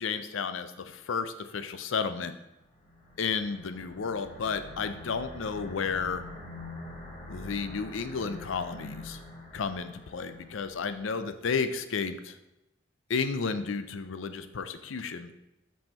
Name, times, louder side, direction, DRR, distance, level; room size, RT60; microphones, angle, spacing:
voice 1, 0.0-2.3 3.2-6.2 7.3-9.2 9.5-12.3 13.1-15.3, left 5 dB, 80° left, 10 dB, 0.5 m, -32 dB
sound 1, 2.6-11.2, left 2 dB, 35° left, 2.0 m, -45 dB
5.5 x 5.3 x 4.3 m, 0.91 s
head